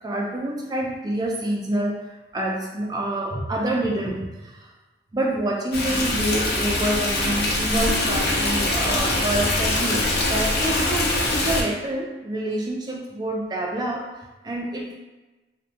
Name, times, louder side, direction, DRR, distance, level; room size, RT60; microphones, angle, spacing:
voice 1, 0.0-2.0 2.3-4.7 5.1-14.0 14.4-15.0, right 1 dB, 20° right, -1 dB, 0.3 m, -27 dB
Stream, 5.7-11.6, left 1 dB, 60° left, 0.4 m, -23 dB
2.2 x 2.1 x 2.6 m, 1.1 s
head